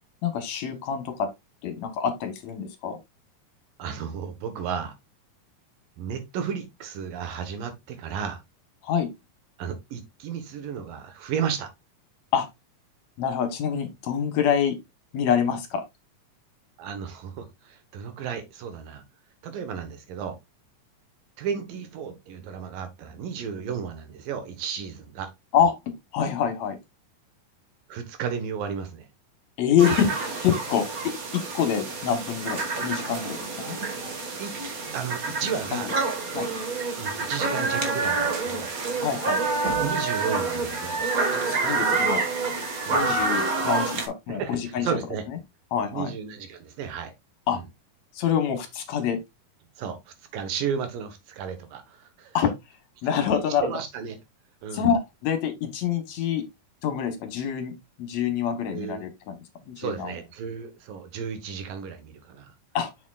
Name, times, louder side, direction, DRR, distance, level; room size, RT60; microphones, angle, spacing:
voice 1, 0.2-1.3 1.6-3.0 8.8-9.1 12.3-12.5 13.2-14.8 15.1-15.8 25.5-25.7 26.1-26.8 29.6-31.1 31.5-33.8 35.7-35.9 36.3-36.5 39.0-39.4 41.5-42.2 42.9-44.9 45.7-46.1 47.5-47.6 48.1-49.2 52.3-52.5 53.0-53.7 54.7-56.4 56.8-59.4 59.7-60.1 62.7-62.9, left 8 dB, 65° left, 2.2 m, -26 dB
voice 2, 3.8-4.9 6.0-8.4 9.6-11.7 16.8-19.0 19.4-20.4 21.4-25.3 27.9-29.1 34.4-34.5 34.9-35.9 36.9-38.7 39.7-41.1 42.8-43.1 44.3-45.2 45.9-47.1 47.5-47.7 49.8-52.4 53.6-54.2 54.6-54.9 58.7-59.0 59.8-62.5, right 7 dB, 80° right, 3.0 m, -33 dB
sound 1, 29.8-44.1, right 3 dB, 50° right, 1.0 m, -28 dB
7.0 x 6.7 x 2.4 m
omnidirectional pair, 3.9 m